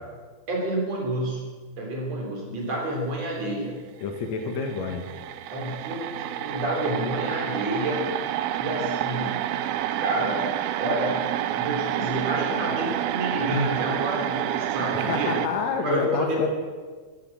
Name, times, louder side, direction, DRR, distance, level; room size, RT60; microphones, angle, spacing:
voice 1, 0.5-3.8 4.4-4.5 5.5-8.0 8.6-9.4 10.0-10.5 10.8-11.2 11.6-15.3 15.8-16.5, right 1 dB, 40° right, -1 dB, 4.1 m, -29 dB
voice 2, 4.0-5.1 15.0-16.5, left 5 dB, 85° left, 4 dB, 1.5 m, -28 dB
sound 1, 4.2-4.3 4.5-15.5, right 12 dB, 80° right, 2.2 m, -29 dB
13.0 x 12.5 x 7.6 m, 1.5 s
omnidirectional pair, 5.2 m